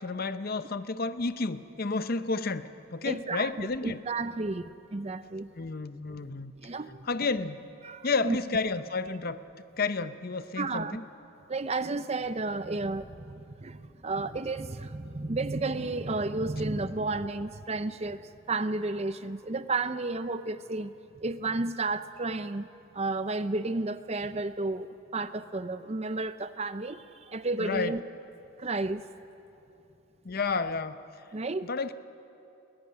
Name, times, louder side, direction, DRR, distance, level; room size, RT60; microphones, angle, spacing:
voice 1, 0.0-4.0 5.6-6.5 7.0-7.7 8.0-9.4 9.8-11.0 27.6-28.0 30.2-31.0 31.6-31.9, left 4 dB, 45° left, 12 dB, 0.6 m, -31 dB
voice 2, 3.0-5.5 6.6-7.0 7.8-8.4 10.6-11.0 11.5-20.9 21.2-22.7 22.9-24.9 25.1-28.0 28.6-29.0 31.3-31.7, right 3 dB, 30° right, 12 dB, 0.6 m, -32 dB
21.5 x 15.0 x 9.8 m, 2.8 s
head